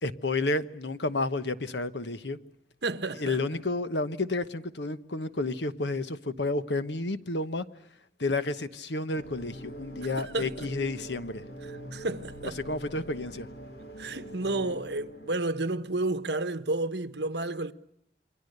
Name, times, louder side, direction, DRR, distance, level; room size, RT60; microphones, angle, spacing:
voice 1, 0.0-2.4 3.2-7.7 8.2-11.4 12.4-13.5, left 2 dB, 80° left, 1.2 m, -31 dB
voice 2, 2.8-3.4 10.2-10.7 11.9-12.6 14.0-17.7, right 2 dB, 75° right, 1.2 m, -31 dB
sound 1, 9.1-15.4, equal, 65° left, 2.3 m, -43 dB
28.0 x 22.5 x 6.7 m
head